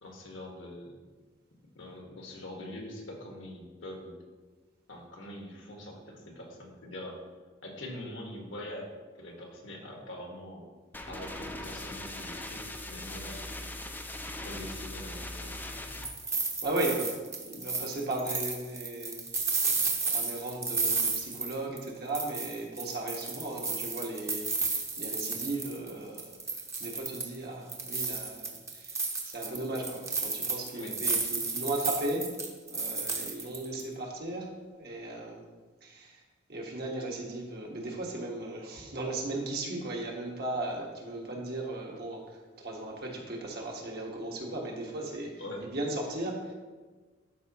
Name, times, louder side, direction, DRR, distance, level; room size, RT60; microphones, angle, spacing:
voice 1, 0.0-1.0 1.7-4.2 4.9-7.2 7.6-8.9 9.2-10.7 11.1-13.5 14.4-16.0 30.8-30.9 45.4-45.7, left 1 dB, 75° left, 0 dB, 1.6 m, -43 dB
sound 1, 10.9-16.1, left 1 dB, 10° left, 0.6 m, -40 dB
sound 2, 15.7-21.9 22.1-25.9 26.2-27.4 27.7-33.8, right 4 dB, 15° right, 0.9 m, -32 dB
voice 2, 16.6-17.1 17.4-19.8 20.1-32.3 32.6-35.5 35.8-36.2 36.5-46.5, right 2 dB, 55° right, -1 dB, 1.5 m, -36 dB
12.0 x 5.1 x 3.0 m, 1.4 s
head